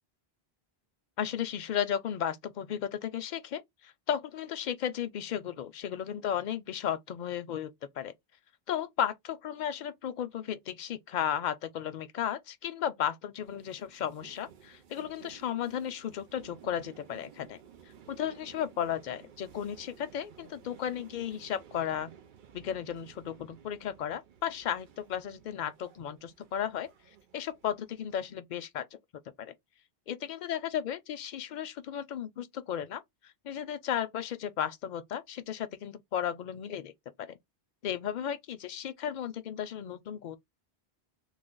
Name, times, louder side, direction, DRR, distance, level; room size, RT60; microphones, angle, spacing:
voice 1, 1.2-8.1 8.7-17.6 18.1-22.1 22.5-26.9 27.3-28.9 29.4-29.5 30.1-36.9 37.2-37.4 37.8-40.4, left 9 dB, 55° left, 0.5 m, -34 dB
sound 1, 13.4-28.3, right 8 dB, 55° right, 0.7 m, -55 dB
3.2 x 2.1 x 3.7 m
omnidirectional pair, 1.0 m